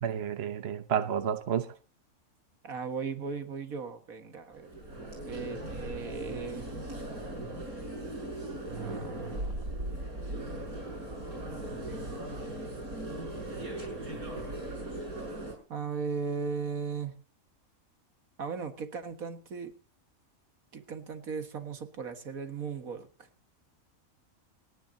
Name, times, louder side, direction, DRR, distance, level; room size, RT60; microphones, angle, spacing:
voice 1, 0.0-1.7, right 8 dB, 50° right, 1.1 m, -30 dB
voice 2, 2.6-4.7 5.3-6.7 8.7-9.5 11.5-11.8 15.7-17.1 18.4-19.7 20.7-23.1, right 5 dB, 75° right, 2.1 m, -37 dB
sound 1, 4.5-15.5, right 1 dB, 90° right, 8.1 m, -38 dB
29.0 x 10.5 x 2.8 m
omnidirectional pair, 1.5 m